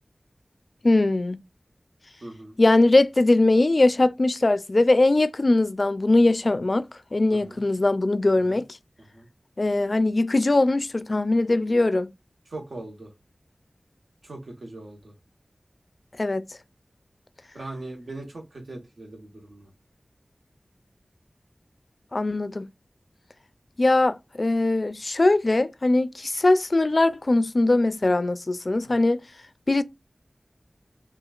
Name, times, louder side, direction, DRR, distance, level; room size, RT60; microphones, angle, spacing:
voice 1, 0.8-1.4 2.6-6.9 7.1-8.7 9.6-12.1 16.2-16.4 22.1-22.7 23.8-29.2 29.7-29.8, left 2 dB, 50° left, 0.3 m, -21 dB
voice 2, 2.2-2.6 7.3-7.6 8.5-8.6 9.1-9.3 12.5-13.1 14.2-15.1 17.5-19.7 28.8-28.9, right 2 dB, 85° right, 1.1 m, -40 dB
5.7 x 2.4 x 2.4 m
wide cardioid pair, 60°, 0 cm